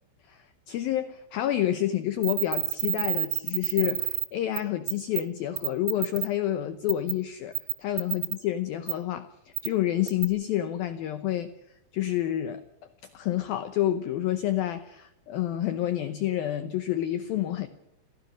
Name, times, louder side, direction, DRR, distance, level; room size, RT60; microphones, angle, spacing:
voice 1, 0.3-11.5 11.9-12.6 13.1-17.7, left 12 dB, 85° left, 2.1 m, -29 dB
sound 1, 2.2-4.3 4.6-4.7 4.9-5.2 5.6-6.3 6.9-7.1 7.5-8.4 8.9-9.0 9.6-9.7 10.1-10.2, right 21 dB, 70° right, 3.0 m, -28 dB
30.0 x 15.5 x 6.2 m
omnidirectional pair, 5.5 m